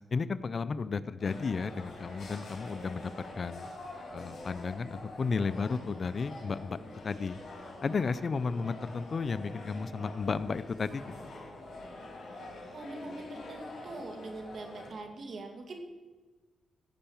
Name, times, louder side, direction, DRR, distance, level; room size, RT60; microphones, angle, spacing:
voice 1, 0.1-3.1 3.4-3.7 4.1-6.8 7.0-7.4 7.8-11.0, left 4 dB, 45° left, 15 dB, 0.5 m, -33 dB
sound 1, 1.2-14.9, left 2 dB, 65° left, 4.4 m, -46 dB
voice 2, 12.7-15.8, right 2 dB, 60° right, 4 dB, 2.2 m, -43 dB
16.0 x 5.6 x 7.0 m, 1.3 s
cardioid pair, 85°, 0 cm